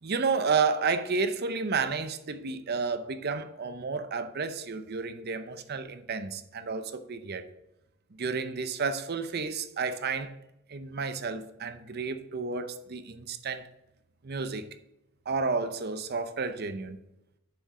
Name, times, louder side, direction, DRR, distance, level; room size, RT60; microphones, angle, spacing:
voice 1, 0.0-7.5 8.1-10.3 10.7-13.7 14.2-14.7 15.3-17.0, right 4 dB, 50° right, 0.7 m, -31 dB
6.9 x 6.0 x 7.0 m
head